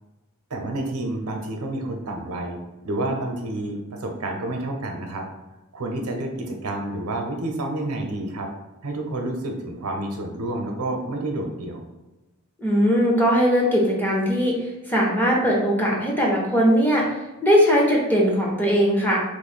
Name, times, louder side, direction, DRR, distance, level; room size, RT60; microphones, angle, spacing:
voice 1, 0.5-2.6 2.8-5.2 5.7-8.5 8.8-11.8, right 1 dB, 80° right, 2 dB, 0.7 m, -29 dB
voice 2, 12.6-14.6 14.9-17.2 17.4-19.2, equal, 10° left, -3 dB, 0.6 m, -19 dB
3.0 x 2.1 x 4.2 m, 1.0 s
head